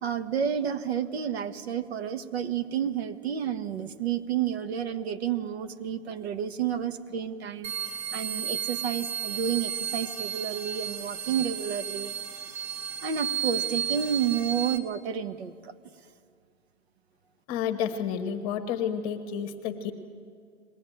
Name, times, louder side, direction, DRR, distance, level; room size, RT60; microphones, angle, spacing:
voice 1, 0.0-7.7 8.1-12.1 13.0-15.7, right 8 dB, 60° right, 9 dB, 1.4 m, -30 dB
sound 1, 7.6-14.8, right 8 dB, 30° right, 1.4 m, -33 dB
voice 2, 17.5-19.9, left 8 dB, 30° left, 7 dB, 1.3 m, -30 dB
21.0 x 15.5 x 9.2 m, 2.2 s
hypercardioid pair, 155°, 36 cm